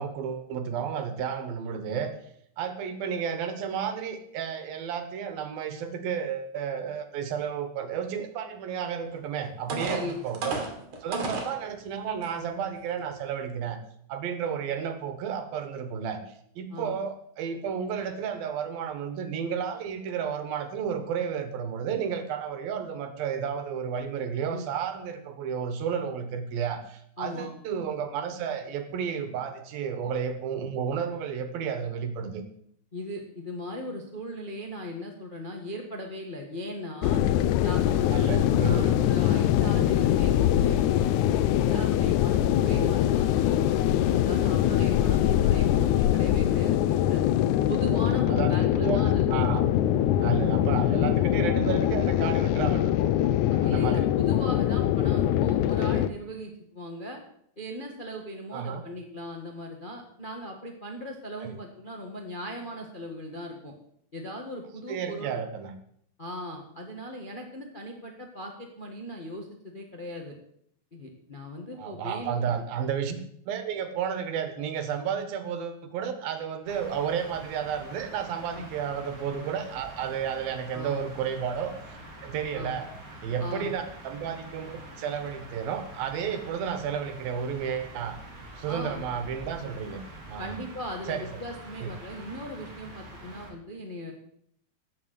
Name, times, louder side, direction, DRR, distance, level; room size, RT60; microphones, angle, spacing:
voice 1, 0.0-2.1 2.6-10.6 11.0-13.8 14.1-16.2 16.6-32.4 38.1-38.9 42.6-42.9 47.8-48.0 48.3-49.7 50.2-53.1 53.6-54.1 58.5-58.9 61.4-61.6 64.9-65.7 71.8-73.2 73.5-82.0 82.2-82.9 83.2-88.2 88.6-90.0 90.3-90.6 91.1-91.3 91.8-91.9, right 7 dB, 90° right, 8 dB, 3.3 m, -32 dB
sound 1, 9.1-9.2 9.7-11.6 12.2-12.3 12.8-13.0, right 3 dB, 55° right, 3.7 m, -32 dB
voice 2, 27.2-27.5 32.9-37.2 37.6-47.2 47.7-49.2 51.1-51.2 53.5-57.2 57.6-63.7 64.1-65.4 66.2-70.4 70.9-72.5 78.5-78.7 80.7-81.0 82.5-82.8 83.4-83.7 88.6-89.0 90.4-94.1, equal, 40° left, 1 dB, 0.7 m, -38 dB
sound 2, 37.0-56.1, left 12 dB, 85° left, 1.7 m, -23 dB
sound 3, 76.7-93.5, right 1 dB, 25° right, 2.8 m, -46 dB
14.5 x 7.1 x 8.3 m, 0.71 s
omnidirectional pair, 4.0 m